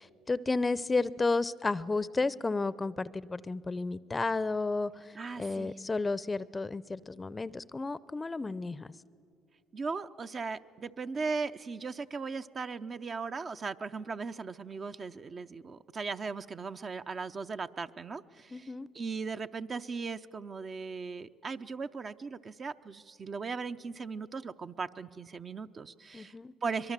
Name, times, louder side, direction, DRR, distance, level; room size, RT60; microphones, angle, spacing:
voice 1, 0.0-8.9 18.5-18.9 26.1-26.5, left 3 dB, 25° left, 19 dB, 0.6 m, -32 dB
voice 2, 5.1-5.7 9.7-26.9, right 4 dB, 40° right, 9 dB, 0.7 m, -38 dB
23.5 x 22.0 x 7.5 m, 2.3 s
supercardioid pair, 65°, 0 cm